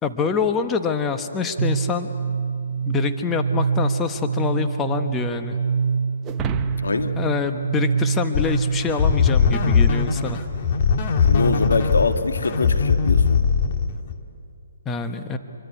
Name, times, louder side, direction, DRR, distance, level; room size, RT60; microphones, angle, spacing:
voice 1, 0.0-2.1 2.9-5.6 7.1-10.4 14.8-15.4, left 5 dB, 15° left, 7 dB, 1.2 m, -25 dB
sound 1, 1.6-9.1, right 5 dB, 60° right, 0.6 m, -25 dB
sound 2, 6.2-8.8, right 6 dB, 15° right, 0.9 m, -34 dB
voice 2, 6.8-7.2 11.2-13.4, left 4 dB, 85° left, 7 dB, 1.8 m, -24 dB
sound 3, 8.3-14.2, left 5 dB, 40° left, 2.0 m, -20 dB
26.0 x 24.0 x 9.5 m, 2.6 s
hypercardioid pair, 150°, 0 cm